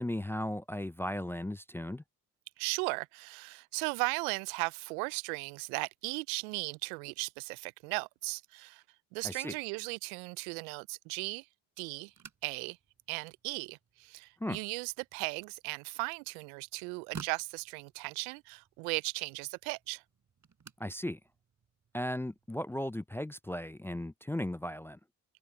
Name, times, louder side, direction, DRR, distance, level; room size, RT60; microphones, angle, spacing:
voice 1, 0.0-2.0 9.2-9.6 14.4-14.6 20.8-21.2 21.9-25.0, left 1 dB, 5° left, 0.4 m, -36 dB
voice 2, 2.6-8.8 9.1-11.5 11.8-12.1 12.4-12.8 13.1-20.0, right 31 dB, 80° right, 0.6 m, -37 dB
sound 1, 12.0-22.5, right 6 dB, 45° right, 6.9 m, -55 dB
hypercardioid pair, 50°, 42 cm